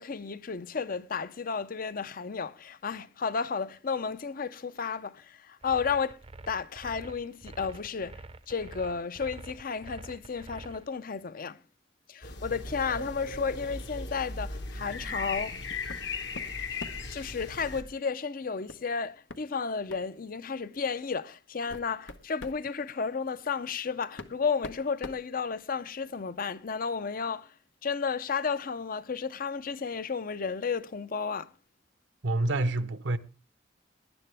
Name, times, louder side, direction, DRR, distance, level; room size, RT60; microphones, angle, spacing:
voice 1, 0.0-6.2 6.5-11.6 12.1-15.6 16.7-16.8 17.1-27.5 27.8-31.5, left 5 dB, 50° left, 0.6 m, -33 dB
sound 1, 5.6-10.8, right 2 dB, 30° right, 0.6 m, -46 dB
sound 2, 12.2-17.8, left 3 dB, 65° left, 1.6 m, -37 dB
sound 3, 15.9-16.1 16.3-17.1 18.7-18.9 19.3-19.4 19.9-20.1 20.9-21.0 21.5-22.6 23.7-23.8 24.2-25.9, left 2 dB, 85° left, 1.1 m, -43 dB
voice 2, 32.2-33.2, right 2 dB, 75° right, 0.9 m, -27 dB
18.5 x 11.0 x 3.4 m
head